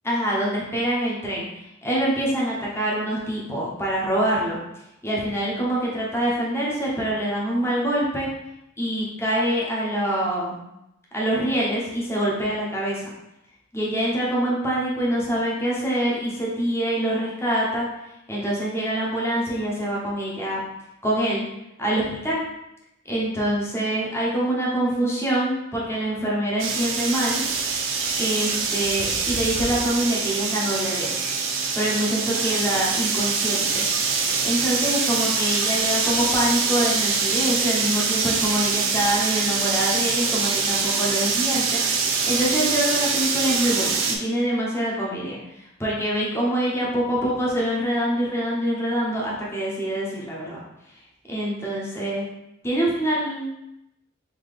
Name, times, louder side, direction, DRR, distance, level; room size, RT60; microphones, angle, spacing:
voice 1, 0.0-1.5 1.8-4.6 5.0-8.3 8.8-10.6 11.1-13.1 13.7-17.9 18.3-20.6 21.0-21.5 21.8-22.4 23.0-27.4 28.2-31.1 31.7-33.9 34.4-50.6 51.3-52.3 52.6-53.5, right 1 dB, 15° left, -5 dB, 0.9 m, -25 dB
sound 1, 26.6-44.2, right 5 dB, 70° right, 0.5 m, -24 dB
3.8 x 2.8 x 3.3 m, 0.88 s
head